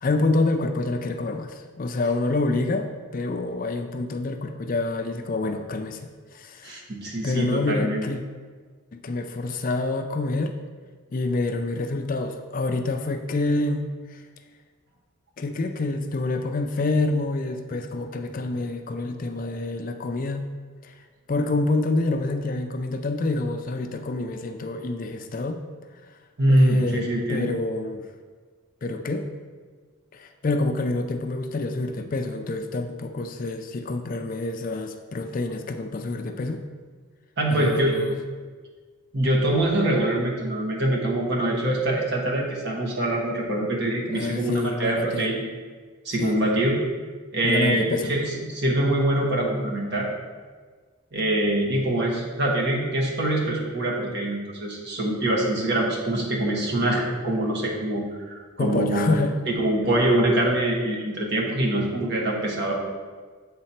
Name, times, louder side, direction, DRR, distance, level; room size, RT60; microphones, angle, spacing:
voice 1, 0.0-6.8 7.2-8.2 8.9-10.6 11.1-14.2 15.4-20.5 20.8-20.9 21.3-25.6 26.5-28.1 28.8-29.3 30.1-36.6 37.5-38.2 44.1-45.3 46.2-46.4 47.4-48.1 58.6-59.3, left 2 dB, 40° left, 6 dB, 0.4 m, -27 dB
voice 2, 6.6-8.0 26.4-27.5 37.4-38.0 39.1-45.5 46.0-46.8 47.3-50.1 51.1-59.1 59.5-62.7, right 1 dB, 55° right, -2 dB, 1.3 m, -24 dB
7.6 x 4.1 x 4.3 m, 1.5 s
head